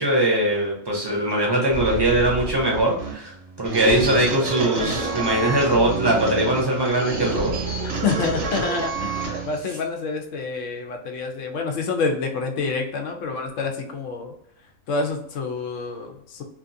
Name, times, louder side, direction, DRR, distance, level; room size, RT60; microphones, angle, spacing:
voice 1, 0.0-7.5, right 1 dB, 25° right, -2 dB, 0.6 m, -21 dB
sound 1, 1.7-9.7, right 3 dB, 70° right, 1.1 m, -29 dB
voice 2, 8.0-14.3 14.9-16.4, left 4 dB, 75° left, 4 dB, 0.9 m, -27 dB
2.9 x 2.4 x 2.6 m, 0.73 s
omnidirectional pair, 1.3 m